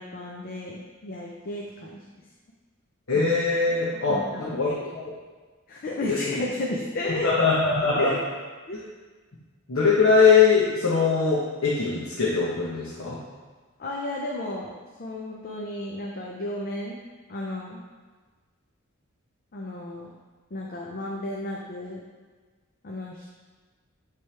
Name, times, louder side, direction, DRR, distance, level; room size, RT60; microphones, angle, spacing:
voice 1, 0.0-1.9 4.1-4.6 5.7-7.3 7.9-8.2 8.7-8.8 13.8-14.7 15.0-17.0 17.3-17.8 19.5-20.1 20.5-22.0 22.8-23.2, left 1 dB, 45° left, -1 dB, 0.5 m, -33 dB
voice 2, 3.1-5.1 6.1-6.4 7.2-8.1 9.7-13.2, left 5 dB, 70° left, -7 dB, 1.0 m, -22 dB
8.7 x 3.4 x 3.3 m, 1.4 s
head